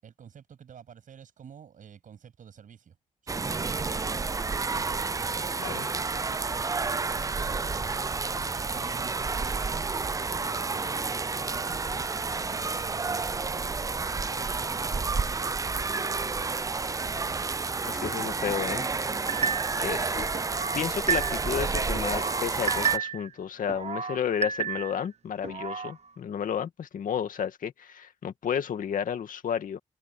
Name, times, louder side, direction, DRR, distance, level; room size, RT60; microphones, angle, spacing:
voice 1, 0.0-3.0 3.2-4.1 4.7-6.2 7.0-7.5 8.5-15.5, right 8 dB, 70° right, 7.9 m, -50 dB
sound 1, 3.3-23.0, right 4 dB, 25° right, 0.5 m, -30 dB
voice 2, 17.8-18.8 19.8-20.3 20.7-29.8, left 8 dB, 75° left, 2.2 m, -32 dB
sound 2, 19.3-19.9 20.3-21.6 22.0-23.3 23.7-25.0 25.4-25.9, right 7 dB, 50° right, 1.2 m, -31 dB
cardioid pair, 90°, 14 cm